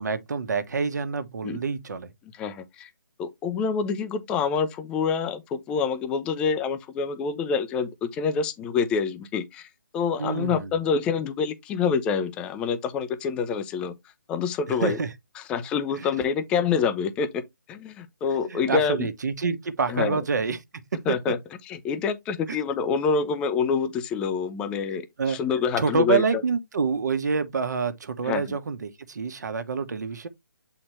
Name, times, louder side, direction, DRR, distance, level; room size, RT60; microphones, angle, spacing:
voice 1, 0.0-2.1 10.2-10.7 14.8-15.1 16.0-16.1 18.5-20.6 22.5-22.6 25.2-25.4 25.8-30.3, right 5 dB, 60° right, 1.3 m, -27 dB
voice 2, 2.4-2.9 3.2-13.9 14.3-15.0 15.4-17.4 17.7-19.1 19.9-20.2 21.1-21.4 21.6-26.4 28.2-28.6, left 6 dB, 10° left, 0.5 m, -27 dB
7.6 x 4.3 x 3.2 m
hypercardioid pair, 160°, 11 cm